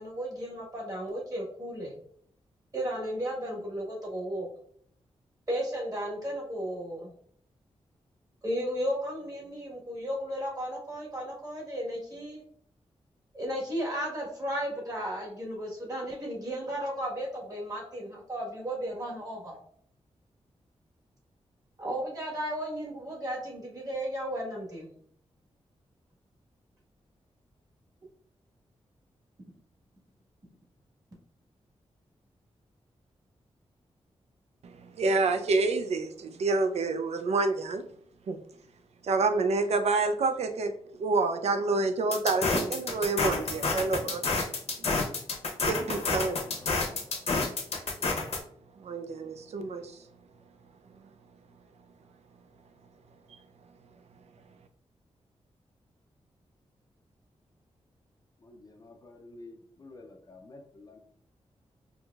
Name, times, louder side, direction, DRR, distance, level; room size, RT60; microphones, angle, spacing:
voice 1, 0.0-1.9 2.7-4.5 5.5-7.1 8.4-12.4 13.3-19.5 21.8-24.9, equal, 35° right, -3 dB, 1.3 m, -34 dB
voice 2, 34.6-37.8 38.3-38.4 39.0-40.7 41.0-44.2 44.8-44.9 45.6-46.4 48.8-50.0, right 3 dB, 75° right, 8 dB, 0.4 m, -28 dB
sound 1, 42.1-48.4, left 3 dB, 65° left, 0.8 m, -29 dB
voice 3, 58.4-61.0, left 2 dB, 35° left, 3 dB, 0.5 m, -50 dB
4.6 x 2.7 x 2.3 m, 0.63 s
wide cardioid pair, 120°, 11 cm